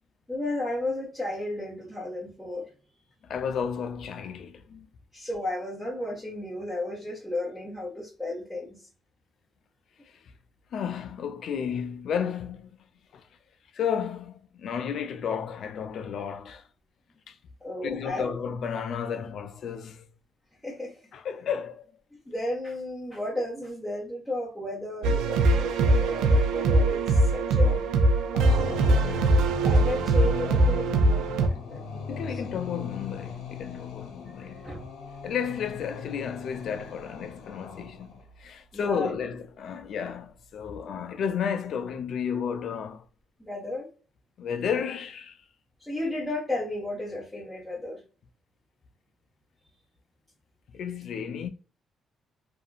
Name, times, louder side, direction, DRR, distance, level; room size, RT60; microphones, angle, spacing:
voice 1, 0.3-2.7 5.1-8.9 17.6-18.3 20.6-20.9 22.2-27.8 28.5-29.3 29.6-32.4 34.3-34.9 38.7-39.1 43.4-43.9 45.8-48.0, left 1 dB, 5° left, 1.3 m, -34 dB
voice 2, 3.2-4.9 10.7-12.8 13.1-13.3 13.7-16.7 17.3-17.4 17.8-20.1 21.1-21.9 32.1-34.8 35.2-43.0 44.4-45.4 50.7-51.5, left 7 dB, 65° left, 0.4 m, -32 dB
sound 1, 25.0-31.5, right 2 dB, 90° right, 0.4 m, -22 dB
sound 2, 28.3-38.2, left 6 dB, 85° left, 0.8 m, -38 dB
2.8 x 2.5 x 2.3 m
cardioid pair, 90°, 0 cm